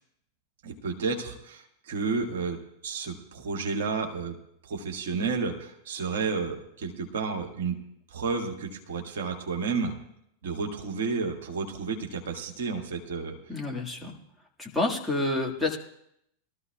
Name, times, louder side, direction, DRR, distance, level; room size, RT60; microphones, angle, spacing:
voice 1, 0.6-4.4 4.6-7.8 8.1-9.9 10.4-13.4, right 4 dB, 60° right, 3 dB, 1.7 m, -31 dB
voice 2, 13.5-14.2 14.6-15.8, left 2 dB, ahead, -2 dB, 1.8 m, -28 dB
22.0 x 13.5 x 2.3 m, 0.76 s
figure-of-eight pair, 90°, 0 cm